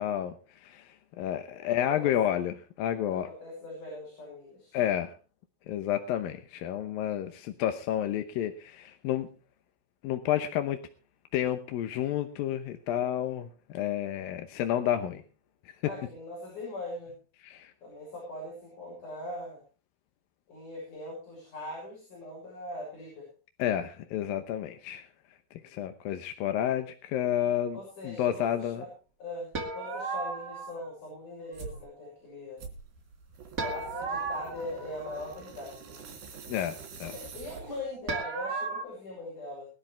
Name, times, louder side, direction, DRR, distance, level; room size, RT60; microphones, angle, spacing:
voice 1, 0.0-3.3 4.7-5.1 5.7-9.3 10.0-10.8 11.3-15.2 15.7-15.8 17.4-17.7 23.6-25.1 25.5-28.9 36.5-37.1, left 11 dB, 75° left, 7 dB, 2.5 m, -30 dB
voice 2, 1.8-2.4 3.2-4.8 15.8-17.1 17.8-19.6 20.5-23.3 27.7-28.9 29.2-32.6 33.6-36.0 37.0-39.7, left 1 dB, 50° left, -3 dB, 8.5 m, -41 dB
sound 1, 29.5-30.9 33.6-35.5 38.1-38.8, right 4 dB, 30° right, 1.8 m, -35 dB
sound 2, 31.5-31.8 32.6-38.0, right 5 dB, 70° right, 5.0 m, -46 dB
21.5 x 12.0 x 3.4 m, 0.34 s
omnidirectional pair, 4.5 m